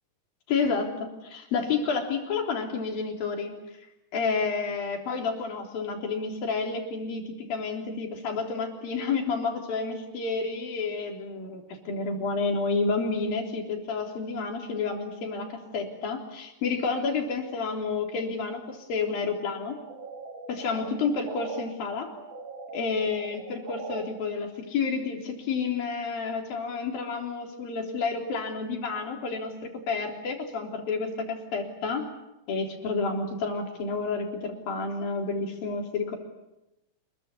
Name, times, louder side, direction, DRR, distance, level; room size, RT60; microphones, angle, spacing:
voice 1, 0.5-3.5 4.1-19.8 20.5-22.1 22.7-32.0 32.5-36.2, left 4 dB, 80° left, 2 dB, 5.4 m, -30 dB
sound 1, 19.5-21.6 22.0-24.0, right 3 dB, 55° right, 4.9 m, -41 dB
28.0 x 22.0 x 8.6 m, 0.93 s
omnidirectional pair, 4.1 m